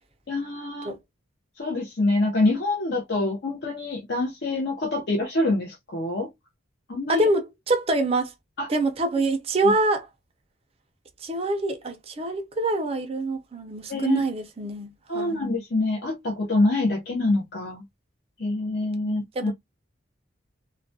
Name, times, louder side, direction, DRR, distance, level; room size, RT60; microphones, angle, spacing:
voice 1, 0.3-0.9 1.6-6.3 6.9-7.3 8.6-8.7 13.9-14.2 15.1-17.8 18.4-19.5, left 2 dB, 55° left, 0.6 m, -25 dB
voice 2, 7.1-8.3 8.7-10.1 11.2-15.4 19.0-19.5, right 2 dB, 30° right, 0.4 m, -25 dB
2.3 x 2.1 x 2.6 m
head